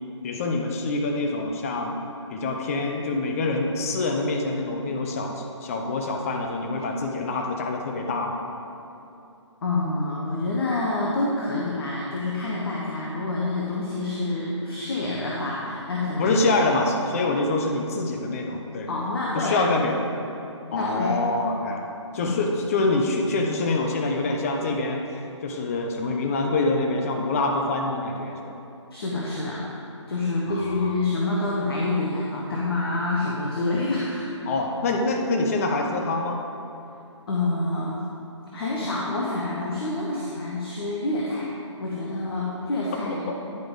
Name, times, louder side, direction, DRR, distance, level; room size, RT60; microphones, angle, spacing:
voice 1, 0.2-1.9 2.3-8.4 16.2-18.9 19.3-20.0 20.7-21.9 22.1-28.4 30.5-30.9 34.5-36.4 43.1-43.4, left 2 dB, 30° left, 2 dB, 0.6 m, -25 dB
voice 2, 9.6-16.3 18.9-19.7 20.7-21.2 22.2-22.4 28.9-29.7 30.1-34.5 37.3-38.0 38.5-41.5 41.8-43.3, left 2 dB, 50° left, -4 dB, 1.1 m, -27 dB
10.5 x 4.9 x 3.7 m, 2.8 s
figure-of-eight pair, 140°, 16 cm